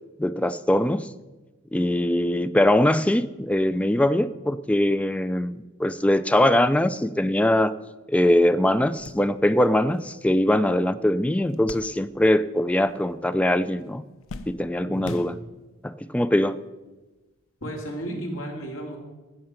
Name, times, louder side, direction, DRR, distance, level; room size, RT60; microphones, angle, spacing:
voice 1, 0.2-1.1 1.7-7.7 8.1-14.0 14.5-15.3 15.8-16.6, left 1 dB, 5° left, 13 dB, 0.3 m, -22 dB
sound 1, 8.2-8.3 8.7-12.5 12.8-13.5 13.8-15.8 16.6-16.7 18.0-18.2, left 3 dB, 90° left, 0.7 m, -44 dB
voice 2, 14.8-15.3 17.6-19.0, right 1 dB, 70° left, 1 dB, 2.7 m, -34 dB
15.5 x 6.6 x 5.7 m, 1.2 s
head